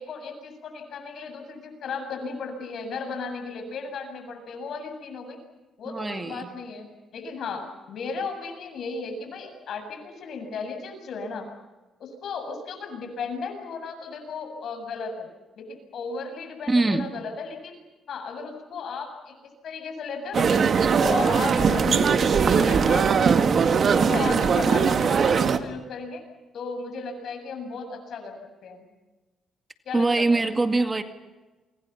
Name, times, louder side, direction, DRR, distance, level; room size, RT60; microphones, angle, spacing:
voice 1, 0.0-5.4 5.8-6.9 7.1-11.5 12.0-15.3 15.6-17.7 18.1-19.4 19.6-20.7 21.0-26.2 26.5-28.9 29.8-30.2, left 4 dB, 65° left, 6 dB, 7.6 m, -35 dB
voice 2, 5.9-6.5 16.7-17.1 29.9-31.0, right 2 dB, 25° right, 7 dB, 2.1 m, -23 dB
sound 1, 20.3-25.6, right 6 dB, 50° right, 1.9 m, -20 dB
29.0 x 25.5 x 5.8 m, 1.2 s
cardioid pair, 90°, 0 cm